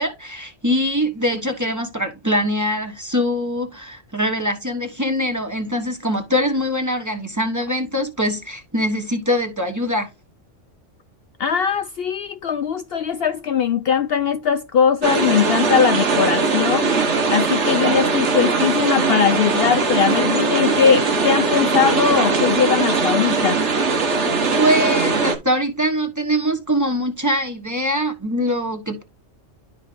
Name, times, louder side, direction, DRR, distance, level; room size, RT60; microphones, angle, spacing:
voice 1, 0.0-10.1 24.5-29.0, equal, 15° right, 1.1 m, -23 dB
voice 2, 11.4-16.9 17.3-23.6, left 7 dB, 60° left, 0.7 m, -20 dB
sound 1, 15.0-25.4, right 4 dB, 70° right, 1.6 m, -20 dB
12.0 x 4.5 x 2.6 m
omnidirectional pair, 1.3 m